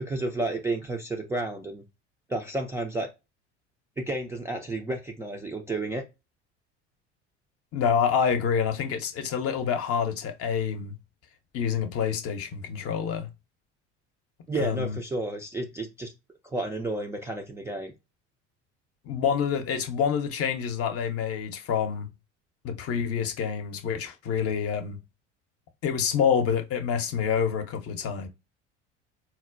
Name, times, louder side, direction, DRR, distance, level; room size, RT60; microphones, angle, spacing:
voice 1, 0.0-1.8 2.3-3.1 4.0-6.0 14.5-16.1 16.4-17.9, right 2 dB, 10° right, 0.3 m, -31 dB
voice 2, 7.7-10.9 11.5-13.3 14.6-15.0 19.0-22.1 22.6-25.0 25.8-28.3, left 7 dB, 40° left, 0.6 m, -27 dB
4.1 x 2.1 x 2.4 m
hypercardioid pair, 65°, 35 cm